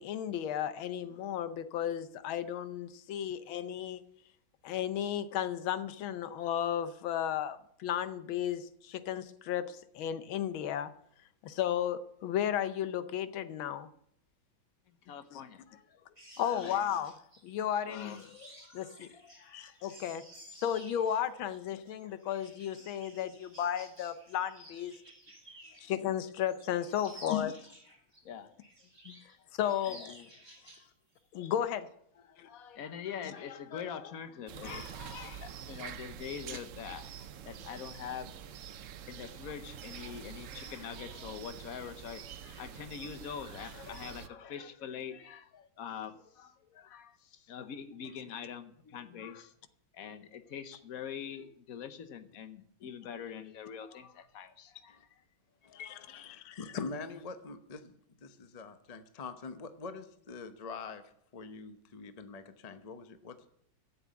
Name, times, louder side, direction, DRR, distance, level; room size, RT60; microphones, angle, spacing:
voice 1, 0.0-4.0 4.6-10.9 11.4-13.9 15.3-15.4 16.4-17.1 17.4-18.2 18.7-19.1 19.5-20.2 20.6-24.9 25.8-27.7 29.0-29.2 29.6-30.3 31.3-31.9 32.4-32.5 55.8-56.5, left 10 dB, 90° left, 1.6 m, -34 dB
voice 2, 14.9-16.2 16.5-16.8 17.8-19.8 22.1-22.2 25.7-25.9 27.1-27.2 28.2-28.9 29.4-29.5 29.8-30.1 30.5-30.7 32.1-37.1 37.4-38.6 39.0-49.5 49.9-55.0 55.6-56.1, left 8 dB, 55° left, 1.2 m, -44 dB
sound 1, 16.1-26.0 26.3-28.2 28.6-29.3 29.6-30.9 31.2-31.4, right 1 dB, 15° right, 3.1 m, -55 dB
sound 2, 34.5-44.3, right 9 dB, 80° right, 0.7 m, -46 dB
voice 3, 55.6-63.5, left 4 dB, 40° left, 0.5 m, -45 dB
13.0 x 7.3 x 8.4 m
omnidirectional pair, 2.2 m